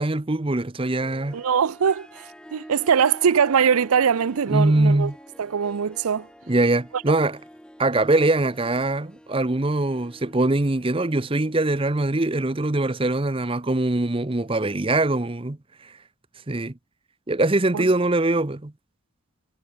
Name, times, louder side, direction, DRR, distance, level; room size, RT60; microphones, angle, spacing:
voice 1, 0.0-1.4 4.5-5.1 6.5-7.4 7.8-15.6 16.5-16.7 17.3-18.7, right 2 dB, 25° right, 0.7 m, -22 dB
Harp, 0.8-12.0, equal, 5° left, 2.4 m, -47 dB
voice 2, 1.3-2.3 2.5-5.1 5.4-6.3 6.9-7.0 17.7-17.8, right 7 dB, 85° right, 0.5 m, -21 dB
head